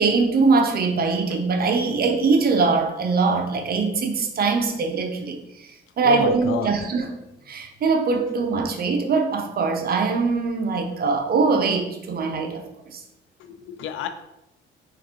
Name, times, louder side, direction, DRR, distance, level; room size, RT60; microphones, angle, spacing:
voice 1, 0.0-5.7 6.0-7.1 7.5-12.6 12.9-13.0, right 4 dB, 50° right, 4 dB, 0.7 m, -22 dB
voice 2, 6.0-6.7 13.4-14.1, left 7 dB, 85° left, 9 dB, 0.4 m, -29 dB
3.8 x 3.6 x 2.9 m, 0.89 s
cardioid pair, 90°, 20 cm